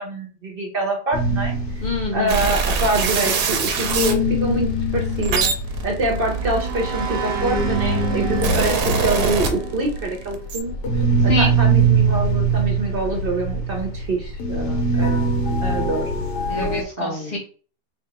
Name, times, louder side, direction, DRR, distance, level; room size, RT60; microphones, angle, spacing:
voice 1, 0.0-1.5 2.1-5.5 5.8-8.8 9.0-16.1 17.0-17.4, right 2 dB, 50° right, 1 dB, 0.7 m, -25 dB
sound 1, 1.1-3.5 3.7-16.8, right 3 dB, 75° left, 1.4 m, -23 dB
voice 2, 1.8-2.4 11.3-11.5 16.5-17.4, left 1 dB, 60° left, -3 dB, 0.4 m, -25 dB
sound 2, 2.3-4.2 4.9-7.3 8.0-10.0 10.3-10.6, right 5 dB, 70° right, 1.1 m, -23 dB
sound 3, 5.9-10.9, right 5 dB, 90° right, 1.5 m, -30 dB
3.4 x 2.3 x 4.0 m, 0.38 s
omnidirectional pair, 1.8 m